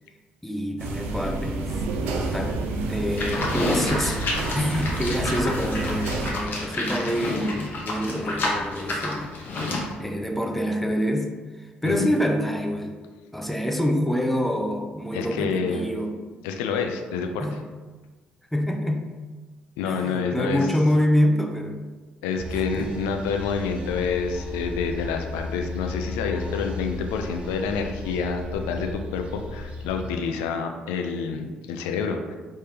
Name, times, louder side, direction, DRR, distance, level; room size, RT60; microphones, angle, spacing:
voice 1, 0.4-2.6 2.9-4.2 4.5-9.4 10.0-13.0 13.3-16.2 17.4-17.6 18.5-19.2 19.8-21.8 22.5-22.9, equal, 5° left, 3 dB, 0.5 m, -26 dB
sound 1, 0.8-6.3, right 2 dB, 75° right, 0.4 m, -29 dB
Livestock farm animals working animals, 3.2-9.9, left 2 dB, 55° left, 0.8 m, -29 dB
voice 2, 15.1-15.8 16.4-17.4 19.8-20.6 22.2-32.4, left 5 dB, 80° left, 5 dB, 0.4 m, -28 dB
sound 2, 22.4-30.1, left 2 dB, 30° right, 1.1 m, -35 dB
3.4 x 3.3 x 2.9 m, 1.3 s
hypercardioid pair, 50°, 4 cm